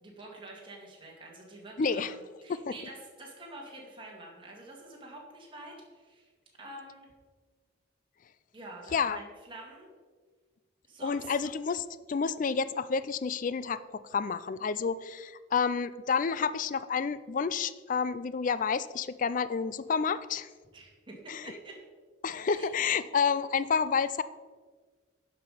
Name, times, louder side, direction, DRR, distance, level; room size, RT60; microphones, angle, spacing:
voice 1, 0.0-6.3 6.6-7.1 8.5-9.9 10.9-11.3 20.7-21.8 22.3-22.7, right 2 dB, 25° right, -1 dB, 2.1 m, -47 dB
voice 2, 1.8-2.1 2.5-2.7 8.9-9.2 11.0-20.5 21.3-21.4 22.2-24.2, left 5 dB, 45° left, 15 dB, 0.4 m, -30 dB
10.5 x 5.9 x 5.0 m, 1.5 s
head